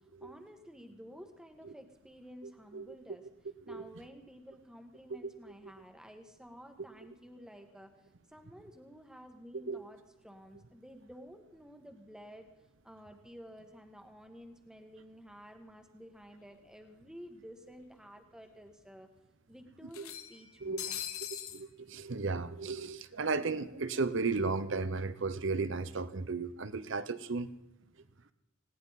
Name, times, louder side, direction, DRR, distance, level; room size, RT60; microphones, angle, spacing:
voice 1, 0.2-3.2 3.6-12.5 12.8-19.1 19.5-21.0, equal, 5° right, 5 dB, 1.5 m, -52 dB
sound 1, 16.5-16.6 16.9-17.0 18.1-18.2 18.5-18.6 19.9-21.6, left 10 dB, 85° left, 1.2 m, -41 dB
voice 2, 21.5-27.5, right 4 dB, 60° right, 13 dB, 0.8 m, -34 dB
19.5 x 17.5 x 4.1 m, 0.95 s
head